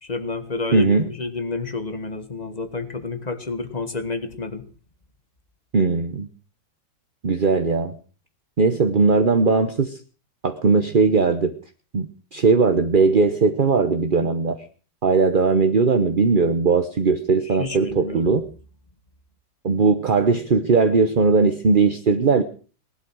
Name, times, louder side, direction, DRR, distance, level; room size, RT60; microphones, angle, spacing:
voice 1, 0.0-4.6 17.6-18.3, left 4 dB, 25° left, 10 dB, 1.5 m, -29 dB
voice 2, 0.7-1.1 5.7-6.3 7.2-7.9 8.6-10.0 10.4-11.6 11.9-14.7 15.0-18.5 19.6-22.4, right 4 dB, 35° right, 6 dB, 0.9 m, -19 dB
19.5 x 11.5 x 6.3 m, 0.40 s
omnidirectional pair, 2.1 m